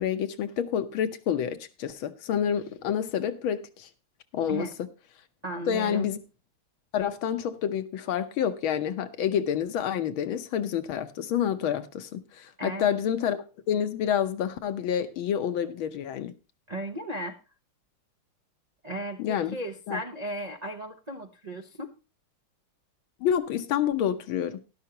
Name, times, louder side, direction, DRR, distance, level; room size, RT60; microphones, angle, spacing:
voice 1, 0.0-3.9 4.3-4.7 5.7-6.2 6.9-16.3 19.2-19.6 19.9-20.0 23.2-24.6, left 9 dB, 75° left, 1.7 m, -28 dB
voice 2, 5.4-6.1 12.6-12.9 16.7-17.4 18.8-21.9, right 1 dB, 60° right, 0.4 m, -35 dB
12.5 x 11.5 x 2.9 m
omnidirectional pair, 2.4 m